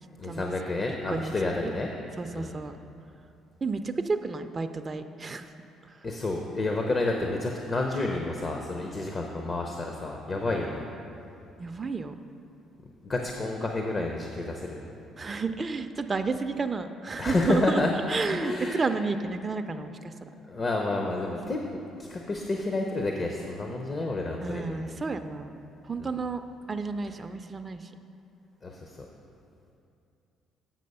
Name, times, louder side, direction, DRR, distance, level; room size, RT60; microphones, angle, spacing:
voice 1, 0.2-1.9 2.3-2.6 6.0-10.9 13.0-14.9 17.2-17.9 18.3-18.8 20.5-24.9 26.0-26.2 28.6-29.0, left 2 dB, 35° left, 1 dB, 0.7 m, -30 dB
voice 2, 1.1-1.7 2.2-2.8 3.6-5.5 5.8-5.9 11.6-12.2 15.2-17.8 18.1-20.1 21.4-21.5 24.4-25.6 25.9-26.4 26.7-27.9, right 4 dB, 30° right, 7 dB, 0.4 m, -31 dB
7.6 x 6.3 x 5.4 m, 2.7 s
supercardioid pair, 80°, 0 cm